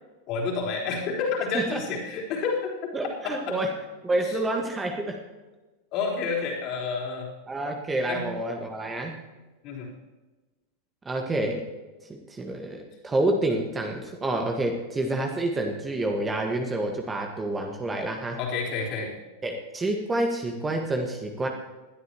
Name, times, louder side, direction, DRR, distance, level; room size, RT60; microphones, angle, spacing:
voice 1, 0.3-2.7 3.2-3.6 4.2-4.4 5.9-7.3 8.1-8.3 9.6-9.9 18.4-19.1, left 4 dB, 40° left, -3 dB, 3.9 m, -29 dB
voice 2, 2.9-3.7 4.0-5.2 7.5-9.2 11.0-11.6 12.1-18.4 19.4-21.5, right 1 dB, 15° right, 2 dB, 1.6 m, -28 dB
20.5 x 12.5 x 3.0 m, 1.2 s
figure-of-eight pair, 90°, 0 cm